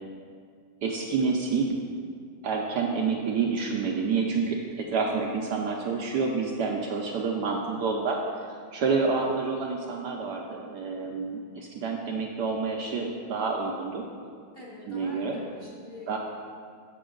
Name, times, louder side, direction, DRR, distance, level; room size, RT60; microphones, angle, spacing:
voice 1, 0.8-1.7 2.4-8.2 8.5-14.0 14.9-15.4 16.1-16.2, right 4 dB, 70° right, 0 dB, 1.0 m, -28 dB
voice 2, 14.5-16.2, left 1 dB, 35° left, -5 dB, 1.1 m, -45 dB
7.5 x 6.9 x 3.8 m, 2.1 s
omnidirectional pair, 2.1 m